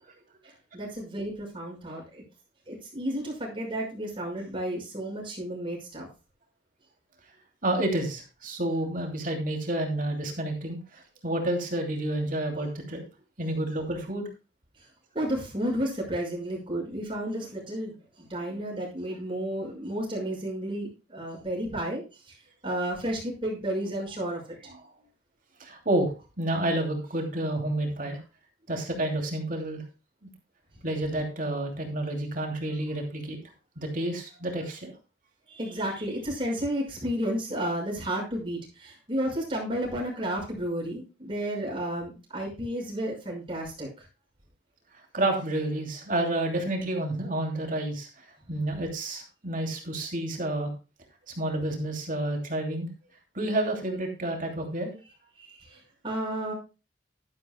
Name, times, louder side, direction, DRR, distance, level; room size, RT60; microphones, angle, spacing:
voice 1, 0.4-2.2 2.7-6.1 15.1-22.0 22.6-24.4 35.5-44.1 55.4-56.5, right 1 dB, 30° right, -1 dB, 5.7 m, -32 dB
voice 2, 7.6-13.0 13.4-14.3 24.7-24.8 25.6-28.2 28.7-29.8 30.2-30.3 30.8-33.4 33.8-34.9 45.1-50.7 51.3-52.9 53.3-54.9, right 1 dB, 50° right, 3 dB, 2.8 m, -30 dB
12.0 x 11.0 x 2.3 m, 0.30 s
head